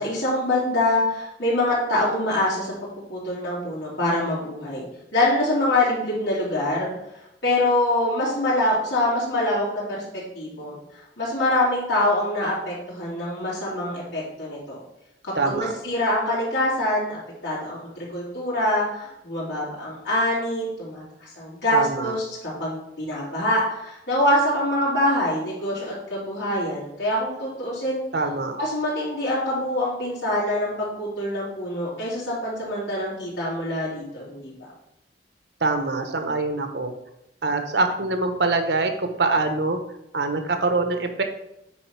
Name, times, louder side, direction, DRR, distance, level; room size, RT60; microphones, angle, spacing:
voice 1, 0.0-4.8 5.1-6.9 7.4-10.8 11.2-14.8 15.2-28.0 28.5-34.7, left 1 dB, 80° left, -8 dB, 3.5 m, -25 dB
voice 2, 15.4-15.7 21.7-22.1 28.1-28.6 35.6-37.0 37.4-39.8 40.1-41.2, right 3 dB, 70° right, 6 dB, 1.1 m, -24 dB
8.9 x 4.3 x 5.8 m, 0.84 s
head